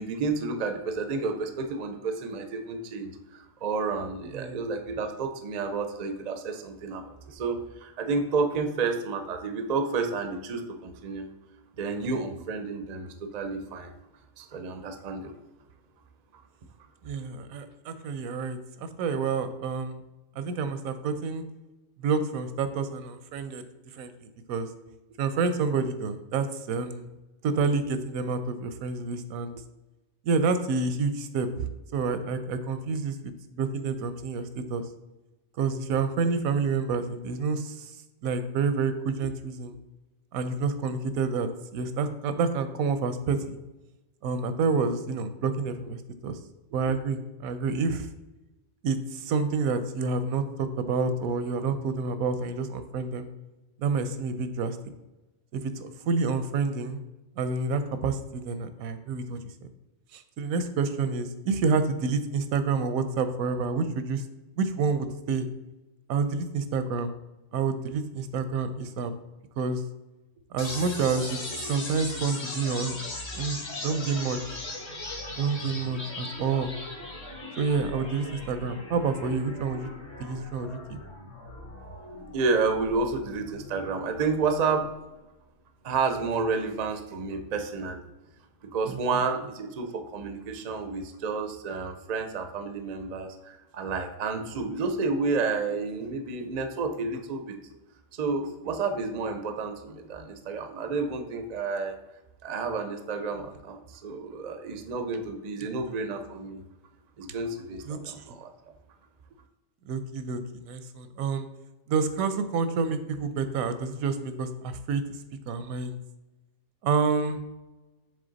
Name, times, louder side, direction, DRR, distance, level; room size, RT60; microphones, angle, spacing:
voice 1, 0.0-11.3 11.8-13.9 14.4-15.3 82.3-84.9 85.8-88.1 88.7-97.6 98.1-102.0 102.4-106.6 107.2-108.5, right 4 dB, 50° right, 7 dB, 0.5 m, -30 dB
voice 2, 17.0-20.0 20.4-21.4 22.0-23.6 24.0-24.7 25.2-27.1 27.4-29.6 30.2-34.8 35.6-37.9 38.2-39.8 40.3-43.6 44.2-46.4 46.7-48.1 48.8-53.3 53.8-54.8 55.5-57.0 57.4-59.5 60.1-64.2 64.6-65.5 66.1-67.1 67.5-69.1 69.6-69.8 70.5-73.0 73.3-74.4 75.4-76.7 77.6-79.9 80.2-81.0 88.9-89.0 107.9-108.2 109.9-111.5 111.9-115.0 115.5-116.0 116.8-117.4, right 4 dB, 80° right, 10 dB, 1.0 m, -28 dB
sound 1, 70.6-84.6, left 2 dB, 50° left, 1.6 m, -39 dB
7.0 x 3.4 x 3.9 m, 1.0 s
omnidirectional pair, 1.4 m